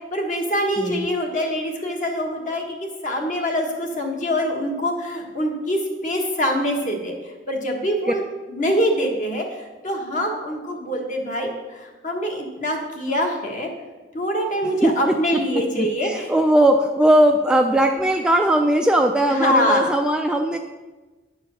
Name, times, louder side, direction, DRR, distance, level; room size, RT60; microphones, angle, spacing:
voice 1, 0.1-7.1 7.5-13.7 14.1-16.3 19.3-19.9, equal, 45° left, 2 dB, 1.4 m, -24 dB
voice 2, 14.8-15.4 15.8-20.6, right 1 dB, 5° right, 3 dB, 0.3 m, -19 dB
9.6 x 4.7 x 6.3 m, 1.2 s
head